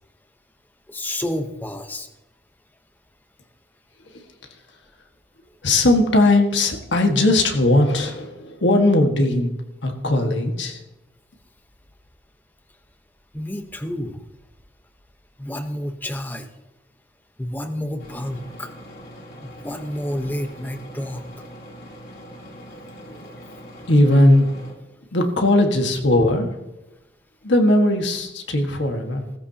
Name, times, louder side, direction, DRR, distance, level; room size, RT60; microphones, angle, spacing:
voice 1, 0.9-2.1 13.3-14.2 15.4-16.5 17.4-18.7 19.4-21.2 23.8-23.9, left 1 dB, 10° left, 6 dB, 0.9 m, -30 dB
voice 2, 5.6-10.8 23.1-23.3 23.9-24.5 25.1-26.6 27.4-29.3, left 1 dB, 80° left, 3 dB, 1.7 m, -19 dB
sound 1, 18.0-24.7, equal, 55° left, 3.2 m, -42 dB
16.5 x 14.5 x 2.9 m, 0.98 s
head